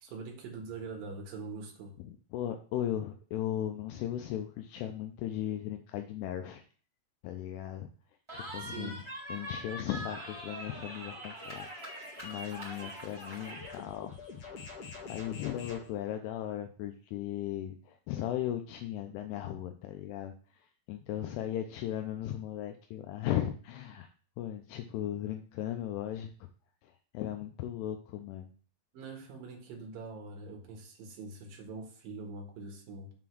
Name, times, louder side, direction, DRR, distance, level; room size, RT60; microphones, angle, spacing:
voice 1, 0.0-1.9 8.6-9.1 28.9-33.1, right 3 dB, 65° right, 1 dB, 2.9 m, -43 dB
voice 2, 2.1-6.6 7.2-7.9 8.3-9.0 9.3-11.9 12.2-14.1 15.1-20.3 20.9-24.1 24.4-26.3 26.8-28.5, left 11 dB, 80° left, 5 dB, 2.6 m, -37 dB
Cheering, 8.3-13.8, right 1 dB, 15° right, 1.1 m, -43 dB
sound 1, 10.5-15.9, left 5 dB, 65° left, 1.4 m, -48 dB
6.8 x 3.9 x 6.1 m, 0.41 s
omnidirectional pair, 4.9 m